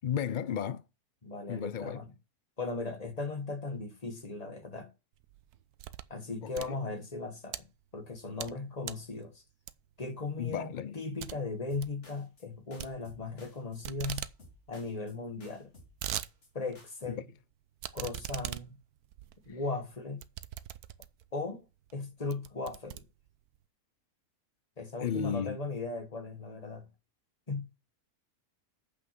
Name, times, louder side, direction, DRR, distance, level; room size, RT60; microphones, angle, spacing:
voice 1, 0.0-0.8 1.5-2.0 6.4-6.8 10.4-11.0 17.1-17.2 19.5-19.6 25.0-25.6, left 8 dB, 90° left, 0.4 m, -34 dB
voice 2, 1.2-2.1 2.6-4.9 6.1-7.6 7.9-9.4 10.0-14.2 14.7-15.7 16.5-17.2 17.9-18.8 19.5-20.2 21.3-21.7 21.9-23.0 24.8-26.9 27.5-27.7, left 3 dB, 25° left, 1.6 m, -37 dB
sound 1, 5.2-6.2 6.5-7.6 8.1-8.6 8.8-9.1 9.7-10.0 10.4-10.5 10.8-10.9 11.2-11.4 11.6-12.0 12.8-13.5 13.8-14.4 14.7-14.8 14.9-15.0 15.6-16.3 16.7-16.8 17.8-21.3 21.9-22.0 22.3-23.6, right 12 dB, 80° right, 1.2 m, -41 dB
sound 2, 11.7-12.5 12.7-13.8 14.1-15.1 15.4-16.5 16.7-17.1, left 1 dB, 50° left, 2.8 m, -57 dB
8.3 x 5.9 x 7.6 m
omnidirectional pair, 1.6 m